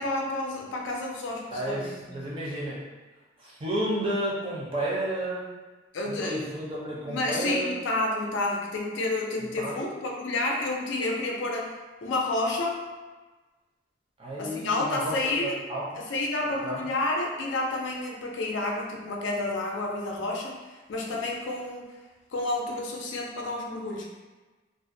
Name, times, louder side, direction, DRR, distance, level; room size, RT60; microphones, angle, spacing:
voice 1, 0.0-2.2 5.9-6.5 7.1-11.7 12.0-12.8 14.4-15.5 16.0-20.6 20.9-21.9 22.3-24.1, left 2 dB, 75° left, 0 dB, 0.4 m, -30 dB
voice 2, 1.5-2.8 3.4-5.5 6.0-7.8 9.4-9.8 14.2-16.0 16.6-16.8, right 1 dB, 30° right, -5 dB, 0.5 m, -32 dB
2.4 x 2.1 x 2.6 m, 1.2 s
head